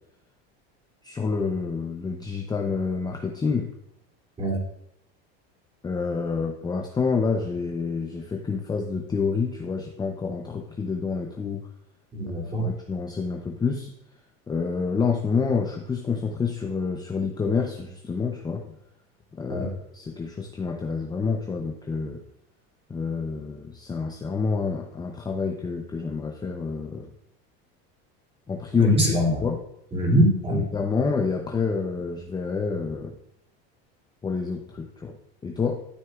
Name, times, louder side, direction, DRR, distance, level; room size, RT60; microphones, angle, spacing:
voice 1, 1.0-3.7 5.8-11.7 12.6-13.9 14.5-18.6 19.4-22.2 22.9-27.1 28.5-29.1 29.4-29.6 30.5-33.1 34.2-35.2 35.4-35.8, left 5 dB, 15° left, 3 dB, 0.6 m, -28 dB
voice 2, 12.1-12.6 19.5-19.7 28.8-29.4 29.9-30.6, right 1 dB, 20° right, -2 dB, 2.7 m, -22 dB
12.5 x 6.4 x 2.4 m, 0.75 s
supercardioid pair, 125°, 30 cm